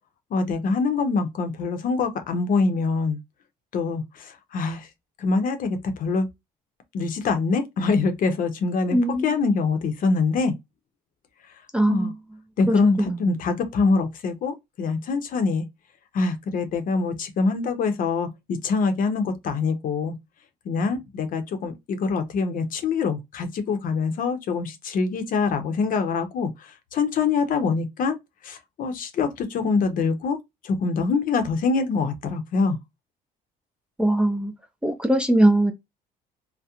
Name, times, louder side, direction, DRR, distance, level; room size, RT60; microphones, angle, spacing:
voice 1, 0.3-3.2 3.7-4.9 5.2-6.3 6.9-10.5 11.9-12.1 12.6-15.7 16.1-20.2 20.6-28.2 28.4-30.4 30.6-32.8, left 4 dB, 55° left, 0.7 m, -24 dB
voice 2, 8.9-9.4 11.7-12.1 12.7-13.4 34.0-34.5 34.8-35.7, right 1 dB, 5° right, 0.4 m, -21 dB
2.8 x 2.1 x 2.3 m
cardioid pair, 110°, 17 cm